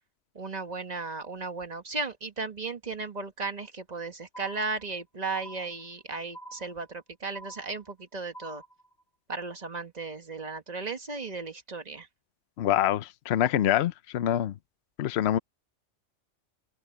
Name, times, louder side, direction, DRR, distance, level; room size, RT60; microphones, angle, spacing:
voice 1, 0.3-8.6 9.3-12.1, right 4 dB, 35° right, 1.7 m, -35 dB
sound 1, 4.3-5.0 5.3-6.0 6.3-7.0 7.3-8.0 8.3-9.0, right 2 dB, 20° left, 0.9 m, -47 dB
voice 2, 12.6-14.6 15.0-15.4, left 11 dB, 60° left, 0.9 m, -25 dB
open air
omnidirectional pair, 1.3 m